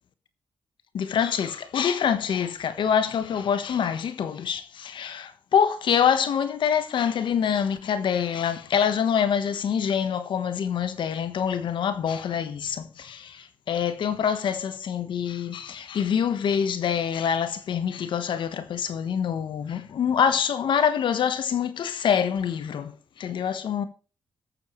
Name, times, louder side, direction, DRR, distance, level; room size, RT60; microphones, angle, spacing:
voice 1, 0.9-22.9 23.2-23.8, left 8 dB, 80° left, 1.2 m, -25 dB
19.5 x 7.0 x 3.1 m
cardioid pair, 65°, 8 cm